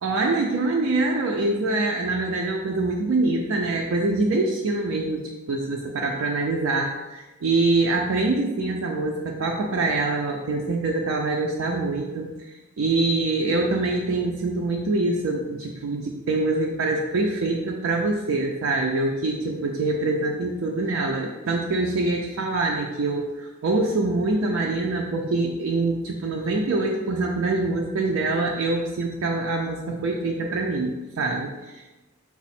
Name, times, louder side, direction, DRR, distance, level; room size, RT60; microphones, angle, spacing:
voice 1, 0.0-31.9, right 2 dB, 80° right, 0 dB, 0.4 m, -25 dB
5.9 x 2.0 x 4.1 m, 1.1 s
head